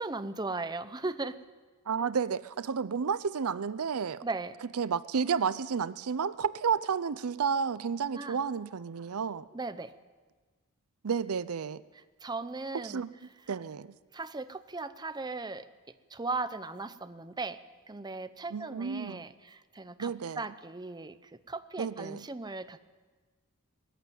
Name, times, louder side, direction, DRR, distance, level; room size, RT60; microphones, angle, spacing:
voice 1, 0.0-1.4 4.2-4.6 8.2-8.4 9.5-9.9 12.2-13.0 14.1-15.6 16.1-17.6 17.9-22.9, right 3 dB, 20° right, 11 dB, 0.7 m, -37 dB
voice 2, 1.9-4.2 4.8-9.5 11.0-11.8 12.7-13.1 13.5-13.9 18.5-19.2 20.0-20.5 21.8-22.3, right 6 dB, 75° right, 16 dB, 0.6 m, -31 dB
20.0 x 14.5 x 9.3 m, 1.4 s
head